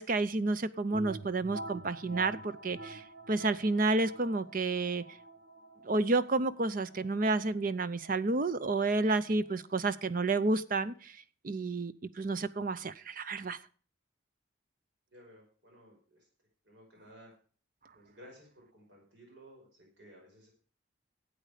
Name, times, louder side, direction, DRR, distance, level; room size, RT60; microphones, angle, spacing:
voice 1, 0.0-5.0 5.8-11.2 11.4-13.6, right 3 dB, 45° right, 14 dB, 0.6 m, -30 dB
sound 1, 0.9-10.5, right 2 dB, 90° right, 1.3 m, -48 dB
voice 2, 15.1-16.3 16.6-17.3 17.9-20.5, equal, 70° right, 0 dB, 5.3 m, -56 dB
12.5 x 8.5 x 5.0 m, 0.42 s
head